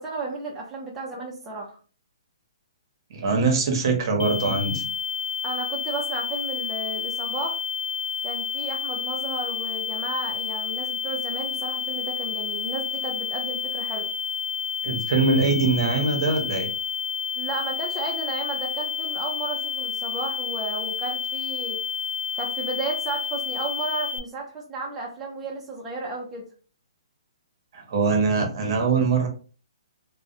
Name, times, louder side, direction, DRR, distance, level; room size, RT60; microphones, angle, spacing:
voice 1, 0.0-1.8 5.4-7.6 8.2-14.1 17.4-21.8 22.4-26.4, right 3 dB, 10° right, -3 dB, 0.4 m, -33 dB
voice 2, 3.1-4.9 14.8-16.7 27.7-29.3, right 4 dB, 50° right, 2 dB, 0.7 m, -22 dB
sound 1, 4.2-24.2, left 7 dB, 85° left, 0.3 m, -30 dB
2.4 x 2.0 x 2.5 m, 0.37 s
hypercardioid pair, 155°, 3 cm